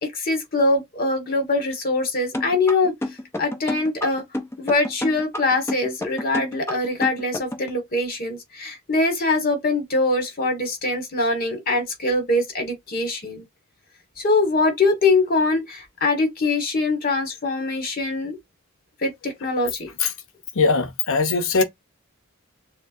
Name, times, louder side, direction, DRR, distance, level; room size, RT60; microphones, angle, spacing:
voice 1, 0.0-2.9 3.4-4.2 4.6-13.4 14.2-18.4 19.0-19.9, left 2 dB, 45° left, 1.5 m, -23 dB
sound 1, 2.3-7.7, left 1 dB, 10° left, 0.7 m, -29 dB
voice 2, 20.6-21.6, left 4 dB, 65° left, 0.7 m, -20 dB
6.5 x 2.2 x 2.5 m
head